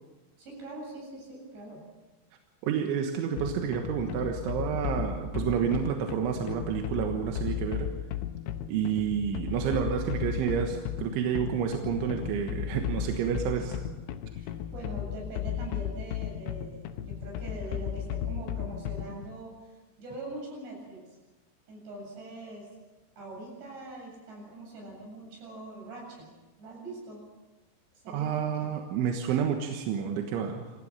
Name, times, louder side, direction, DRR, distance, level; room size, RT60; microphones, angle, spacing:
voice 1, 0.4-1.9 14.3-19.5 20.0-21.0 21.7-22.7 23.2-26.3 26.6-27.2 28.0-28.5, right 2 dB, 65° right, 0 dB, 9.6 m, -42 dB
voice 2, 2.6-7.9 8.7-13.8 28.1-30.7, right 8 dB, 90° right, 4 dB, 3.8 m, -29 dB
sound 1, 3.4-19.3, left 9 dB, 80° left, 3.4 m, -35 dB
26.5 x 15.5 x 7.4 m, 1.2 s
omnidirectional pair, 5.4 m